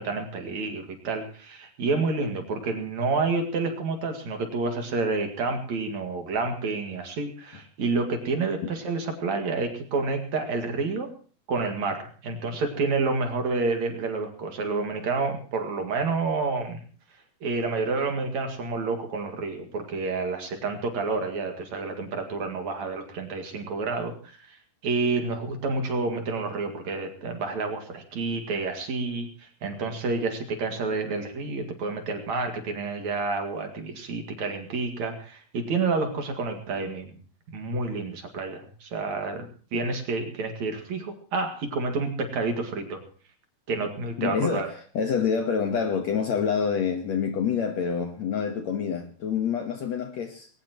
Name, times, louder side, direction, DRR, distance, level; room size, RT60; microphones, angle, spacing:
voice 1, 0.0-11.1 11.5-16.8 17.4-24.6 24.8-37.1 37.5-43.0 43.7-44.7, right 3 dB, 55° right, 3.1 m, -29 dB
voice 2, 44.2-50.5, left 6 dB, 60° left, 2.0 m, -27 dB
20.5 x 19.0 x 3.0 m
omnidirectional pair, 4.3 m